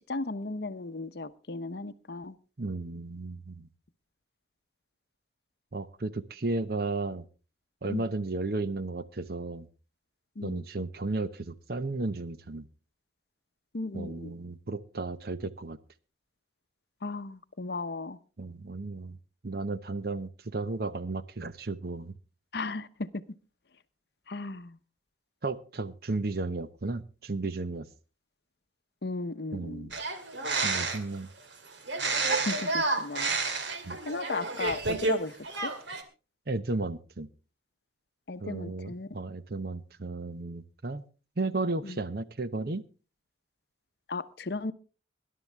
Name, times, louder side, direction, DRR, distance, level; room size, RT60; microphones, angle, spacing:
voice 1, 0.1-2.4 7.9-8.0 10.4-10.6 13.7-14.3 17.0-18.2 22.5-23.1 24.3-24.8 29.0-29.9 32.5-33.3 34.1-35.4 35.6-35.7 38.3-39.1 41.8-42.0 44.1-44.7, left 3 dB, 55° left, 12 dB, 0.8 m, -35 dB
voice 2, 2.6-3.7 5.7-7.2 7.8-9.7 10.4-12.7 13.9-15.8 18.4-19.2 19.4-22.1 25.4-27.9 29.5-29.9 30.6-31.3 33.8-34.0 36.5-37.3 38.4-41.1 41.4-42.8, right 3 dB, 50° right, 13 dB, 0.8 m, -34 dB
sound 1, 29.9-31.2 31.9-35.2 35.4-36.0, right 3 dB, 70° right, 2.2 m, -30 dB
20.5 x 11.0 x 3.4 m, 0.35 s
head